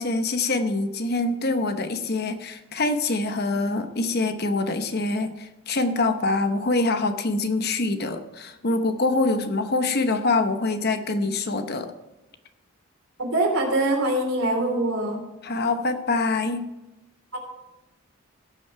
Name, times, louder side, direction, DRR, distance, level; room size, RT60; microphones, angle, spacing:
voice 1, 0.0-11.9 15.4-16.7, left 2 dB, 50° left, 8 dB, 0.9 m, -25 dB
voice 2, 13.2-15.2 17.3-17.4, right 1 dB, 75° right, 0 dB, 3.2 m, -23 dB
17.0 x 6.1 x 4.7 m, 1.0 s
head